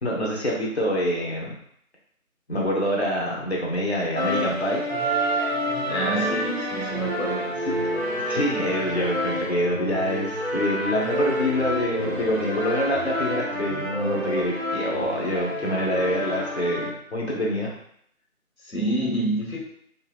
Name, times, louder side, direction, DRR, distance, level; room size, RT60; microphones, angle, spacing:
voice 1, 0.0-1.5 2.5-4.8 7.7-7.8 8.3-17.7, equal, 50° left, -3 dB, 0.7 m, -26 dB
sound 1, 4.2-16.9, equal, 50° right, 0.5 m, -28 dB
voice 2, 5.9-7.5 18.6-19.6, right 1 dB, 75° left, -2 dB, 1.0 m, -27 dB
2.7 x 2.1 x 2.3 m, 0.69 s
figure-of-eight pair, 170°, 43 cm